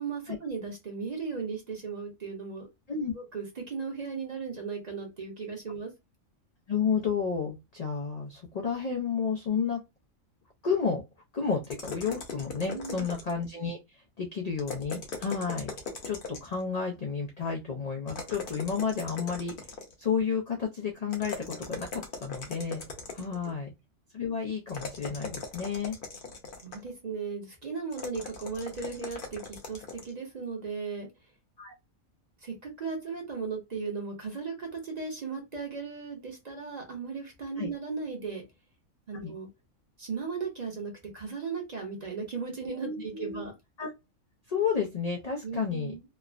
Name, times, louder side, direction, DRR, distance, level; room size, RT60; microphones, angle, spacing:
voice 1, 0.0-2.7 3.1-5.9 12.7-13.0 26.6-31.1 32.4-38.4 39.1-39.5 40.0-43.5 45.4-46.0, right 5 dB, 40° right, 1 dB, 0.7 m, -36 dB
voice 2, 6.7-9.8 10.6-11.0 11.3-15.7 16.0-19.5 20.0-22.8 23.1-23.7 24.1-26.0 31.6-31.7 37.6-37.7 39.2-39.3 42.8-43.5 43.8-43.9 44.5-45.9, left 6 dB, 75° left, 0 dB, 0.3 m, -31 dB
sound 1, 11.6-13.5 14.6-16.6 18.1-20.1 21.1-23.5 24.7-26.9 27.9-30.1, left 4 dB, 50° left, 0.7 m, -40 dB
3.2 x 2.0 x 2.4 m, 0.23 s
omnidirectional pair, 1.4 m